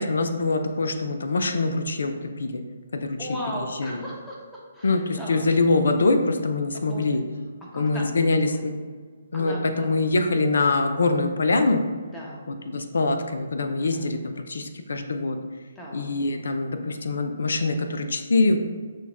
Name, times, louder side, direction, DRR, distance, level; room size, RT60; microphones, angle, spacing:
voice 1, 0.0-2.6 2.9-3.2 3.8-4.0 4.8-7.2 7.7-8.7 9.3-11.8 12.7-15.4 15.9-18.6, left 3 dB, 75° left, 7 dB, 0.5 m, -24 dB
voice 2, 3.2-5.5 6.7-7.2 7.7-8.6 9.3-9.9 12.1-12.5 13.8-14.1 15.7-16.1, equal, 10° left, -5 dB, 1.0 m, -37 dB
6.2 x 2.3 x 3.4 m, 1.5 s
hypercardioid pair, 145°, 0 cm